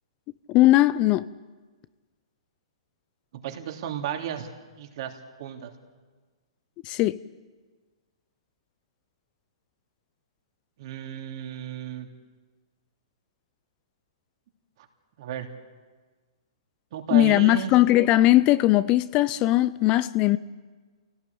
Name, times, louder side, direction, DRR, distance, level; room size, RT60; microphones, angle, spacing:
voice 1, 0.5-1.3 6.9-7.2 17.1-20.4, left 16 dB, 35° left, 0.6 m, -19 dB
voice 2, 3.3-4.5 4.7-5.7 10.8-12.1 14.8-14.9 15.2-15.5 16.9-17.7, right 9 dB, 55° right, 3.0 m, -34 dB
25.5 x 17.5 x 8.6 m
hypercardioid pair, 130°, 3 cm